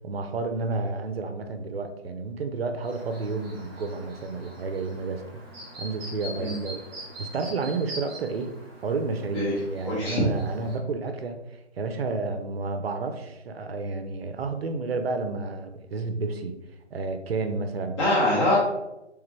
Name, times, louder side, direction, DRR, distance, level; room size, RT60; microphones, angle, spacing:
voice 1, 0.0-5.2 5.8-6.8 7.2-8.5 8.8-16.6 16.9-18.0, right 3 dB, 60° right, 7 dB, 0.6 m, -31 dB
Chirp tweet, 2.8-10.8, equal, 10° right, 0.6 m, -43 dB
voice 2, 9.8-10.2 18.0-18.6, left 1 dB, 25° left, -7 dB, 0.7 m, -23 dB
3.4 x 3.2 x 2.9 m, 0.93 s
figure-of-eight pair, 145°, 35 cm